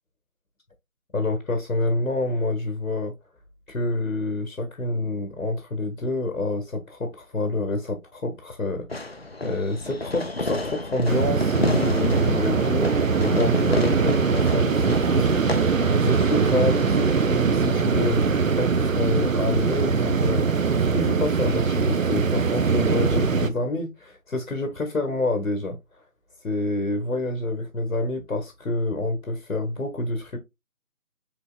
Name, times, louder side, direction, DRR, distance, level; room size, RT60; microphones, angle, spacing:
voice 1, 1.1-3.1 3.7-15.3 16.0-18.3 18.6-20.5 20.9-25.8 26.4-30.4, left 2 dB, 85° left, 1.5 m, -27 dB
Fireworks, 8.9-17.9, left 2 dB, 45° left, 0.5 m, -31 dB
sound 1, 11.1-23.5, right 5 dB, 65° right, 0.7 m, -22 dB
6.6 x 3.5 x 2.2 m
figure-of-eight pair, 165°, 43 cm